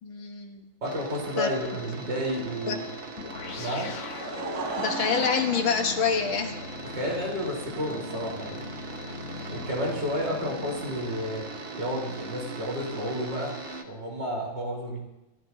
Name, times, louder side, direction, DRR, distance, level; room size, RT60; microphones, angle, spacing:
voice 1, 0.0-0.6 1.4-1.5 2.7-2.8 4.8-6.5 9.4-9.6, left 6 dB, 75° left, 4 dB, 2.1 m, -27 dB
sound 1, 0.8-13.8, right 3 dB, 35° right, 1.0 m, -40 dB
voice 2, 0.8-2.8 3.6-3.9 6.8-8.7 9.5-11.4 11.7-13.5 13.8-15.0, equal, 55° right, -2 dB, 4.7 m, -31 dB
sound 2, 3.2-12.0, left 5 dB, 45° left, 1.0 m, -41 dB
Laughter / Crowd, 3.9-10.8, right 4 dB, 85° right, 2.3 m, -39 dB
29.0 x 13.0 x 2.8 m, 0.95 s
omnidirectional pair, 2.3 m